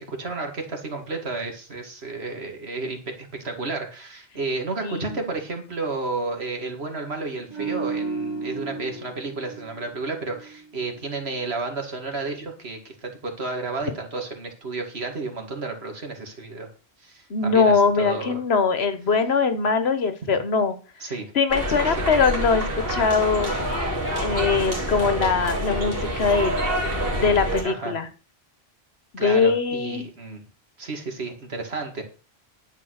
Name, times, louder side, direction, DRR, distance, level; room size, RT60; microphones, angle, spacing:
voice 1, 0.0-16.7 17.0-18.4 21.0-21.3 21.8-22.0 27.6-27.9 29.2-30.4 30.8-32.0, right 3 dB, 80° right, 3 dB, 2.5 m, -32 dB
voice 2, 4.8-5.2 17.3-20.8 21.3-22.6 22.9-23.5 24.2-26.6 27.2-28.1 29.1-30.1, left 5 dB, 75° left, 10 dB, 1.4 m, -22 dB
sound 1, 7.5-10.8 11.1-11.3, right 4 dB, 25° right, 1.8 m, -33 dB
sound 2, 21.5-27.6, equal, 60° right, 3.1 m, -27 dB
10.5 x 5.4 x 6.4 m, 0.36 s
omnidirectional pair, 1.1 m